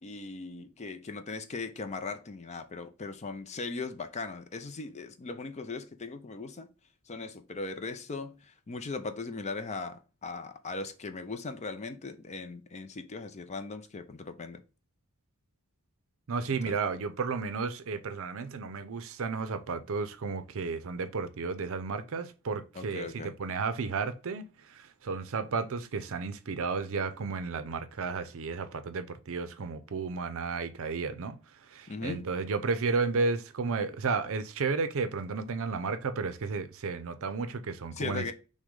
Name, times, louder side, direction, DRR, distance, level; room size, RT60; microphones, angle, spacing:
voice 1, 0.0-6.7 7.1-14.6 16.7-16.8 22.8-23.3 31.9-32.3 38.0-38.3, left 3 dB, 30° left, 0.5 m, -38 dB
voice 2, 16.3-38.3, right 4 dB, 65° right, 0.5 m, -33 dB
6.0 x 2.2 x 3.7 m
head